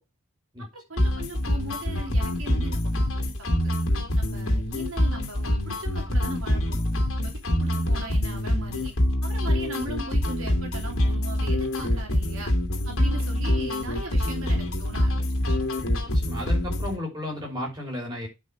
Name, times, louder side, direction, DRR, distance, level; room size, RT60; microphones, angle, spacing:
voice 1, 0.6-3.5 4.1-6.9 7.2-8.9 9.2-12.5 12.9-15.6, right 2 dB, 70° right, 3.2 m, -39 dB
sound 1, 1.0-17.0, left 1 dB, 85° left, 2.7 m, -25 dB
voice 2, 16.1-18.3, left 1 dB, 20° right, 5.7 m, -33 dB
9.6 x 5.9 x 6.1 m
head